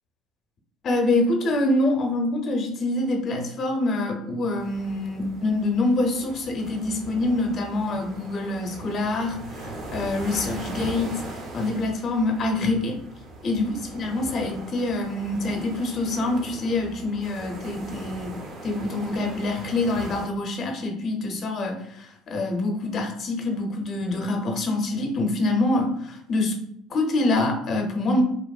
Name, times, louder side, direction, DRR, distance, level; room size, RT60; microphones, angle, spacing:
voice 1, 0.8-11.2 11.5-13.0 13.4-18.3 18.6-26.6 26.9-28.2, left 2 dB, 45° left, 2 dB, 0.6 m, -25 dB
sound 1, 4.6-20.3, right 1 dB, 50° right, 0.7 m, -39 dB
2.9 x 2.0 x 2.3 m, 0.73 s
hypercardioid pair, 70°, 0 cm